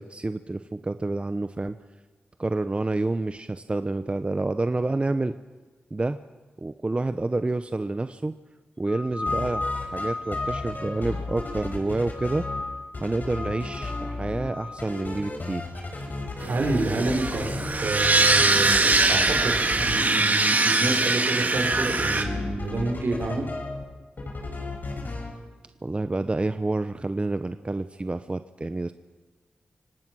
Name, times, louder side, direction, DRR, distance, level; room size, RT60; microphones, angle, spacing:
voice 1, 0.0-1.8 2.4-5.3 5.9-6.2 6.6-8.3 8.8-12.4 13.0-15.8 25.8-28.9, right 2 dB, 30° right, 10 dB, 0.8 m, -28 dB
sound 1, 8.9-11.8 12.1-12.9 13.3-14.8, left 2 dB, 30° left, 3.3 m, -34 dB
sound 2, 9.1-10.1 10.3-12.6 12.9-14.5 14.8-19.9 21.5-23.8 24.2-25.3, left 3 dB, 55° left, 5.4 m, -34 dB
sound 3, 16.4-22.2, right 3 dB, 45° right, 2.0 m, -22 dB
voice 2, 16.5-17.5 17.8-23.5, right 2 dB, 75° right, 3 dB, 4.8 m, -28 dB
25.5 x 18.0 x 6.2 m, 1.3 s
cardioid pair, 55°, 4 cm